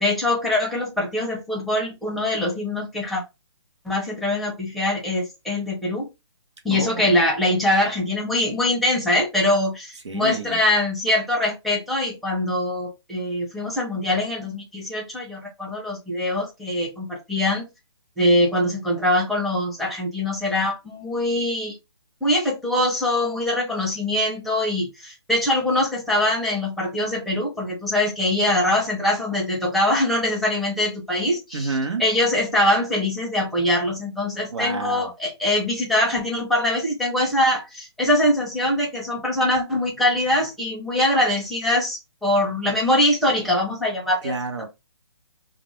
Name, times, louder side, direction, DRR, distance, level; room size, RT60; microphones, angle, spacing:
voice 1, 0.0-3.2 3.8-6.0 6.6-17.6 18.2-21.7 22.2-31.7 32.0-44.3, left 1 dB, ahead, 0.6 m, -23 dB
voice 2, 6.7-7.1 10.0-10.6 31.5-32.0 34.5-35.1 44.2-44.7, right 3 dB, 80° right, 0.9 m, -28 dB
2.4 x 2.1 x 3.0 m
hypercardioid pair, 150°, 15 cm